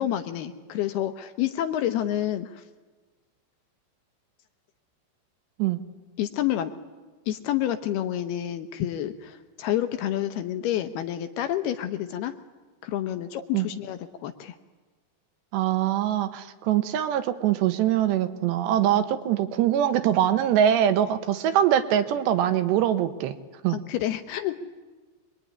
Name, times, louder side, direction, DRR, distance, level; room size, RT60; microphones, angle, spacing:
voice 1, 0.0-2.6 6.2-6.7 7.3-12.3 12.8-14.5 23.7-24.6, left 12 dB, 75° left, 9 dB, 2.7 m, -29 dB
voice 2, 15.5-23.4 23.6-23.8, right 10 dB, 80° right, 9 dB, 3.2 m, -23 dB
27.0 x 22.0 x 9.8 m, 1.3 s
omnidirectional pair, 5.2 m